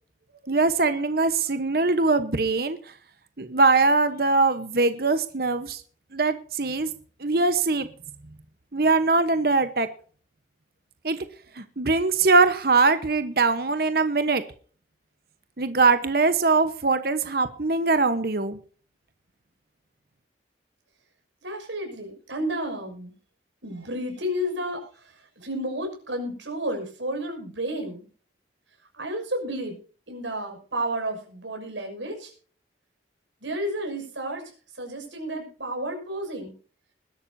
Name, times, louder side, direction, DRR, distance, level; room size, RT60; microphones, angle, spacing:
voice 1, 0.4-2.8 3.4-5.8 6.1-6.9 7.2-7.9 8.7-9.9 11.0-11.2 11.6-14.4 15.6-18.6, right 3 dB, 55° right, 10 dB, 1.1 m, -22 dB
voice 2, 21.4-23.1 23.6-24.8 25.4-28.1 28.9-29.8 30.1-32.3 33.4-34.4 34.8-36.5, right 1 dB, 90° right, 3 dB, 6.6 m, -31 dB
21.0 x 12.0 x 2.8 m, 0.43 s
head